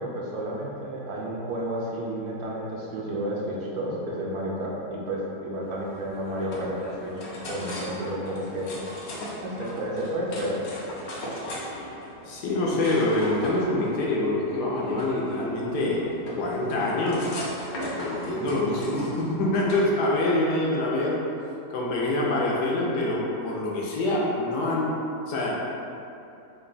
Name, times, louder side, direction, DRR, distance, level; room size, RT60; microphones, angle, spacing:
voice 1, 0.0-7.1 7.5-8.7 9.4-10.6, right 1 dB, 75° right, -4 dB, 1.2 m, -31 dB
sound 1, 5.6-19.9, equal, 55° left, 0.8 m, -38 dB
voice 2, 12.2-16.0 16.3-17.4 17.9-21.2 21.7-24.9 25.3-25.5, left 2 dB, 90° left, -4 dB, 1.2 m, -25 dB
3.6 x 2.3 x 3.9 m, 2.7 s
omnidirectional pair, 1.7 m